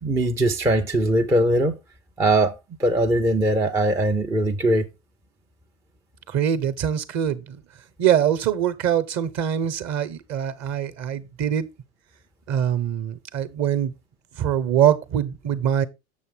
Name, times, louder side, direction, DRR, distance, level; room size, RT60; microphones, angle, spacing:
voice 1, 0.0-1.8 2.2-2.5 2.8-4.9, right 1 dB, 10° right, 0.3 m, -20 dB
voice 2, 6.3-7.6 8.0-11.7 12.5-13.9 14.4-15.8, right 9 dB, 40° right, 0.9 m, -23 dB
7.0 x 6.9 x 3.3 m
hypercardioid pair, 90°, 42 cm